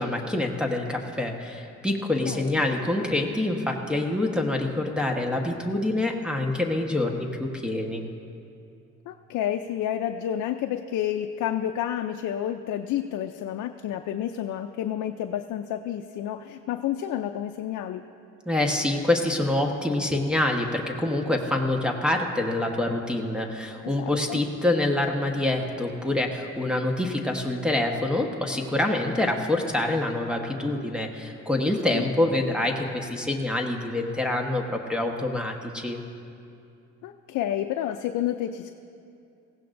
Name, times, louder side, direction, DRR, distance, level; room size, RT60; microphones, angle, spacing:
voice 1, 0.0-8.0 18.5-36.0, left 1 dB, 5° right, 0 dB, 1.2 m, -26 dB
voice 2, 9.1-18.0 23.8-24.4 31.9-32.0 37.0-38.7, left 11 dB, 80° left, 6 dB, 0.5 m, -30 dB
19.0 x 15.5 x 2.6 m, 2.6 s
cardioid pair, 90°, 30 cm